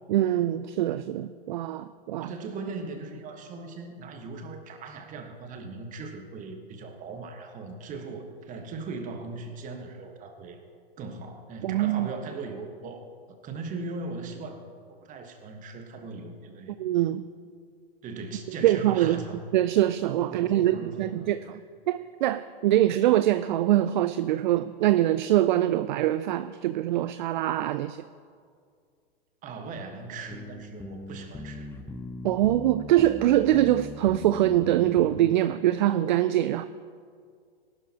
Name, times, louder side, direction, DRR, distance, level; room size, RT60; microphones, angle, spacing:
voice 1, 0.1-2.3 11.6-12.1 16.8-17.3 18.6-19.2 19.5-21.6 21.9-28.0 32.2-36.7, right 13 dB, 55° right, 13 dB, 0.4 m, -24 dB
voice 2, 2.2-10.6 11.0-13.1 13.4-14.7 15.0-16.7 18.0-19.4 20.3-21.5 29.4-31.7, right 3 dB, 25° right, 5 dB, 1.5 m, -39 dB
sound 1, 30.3-35.4, left 2 dB, 5° left, 0.7 m, -40 dB
19.5 x 12.0 x 3.0 m, 2.2 s
hypercardioid pair, 110°, 30 cm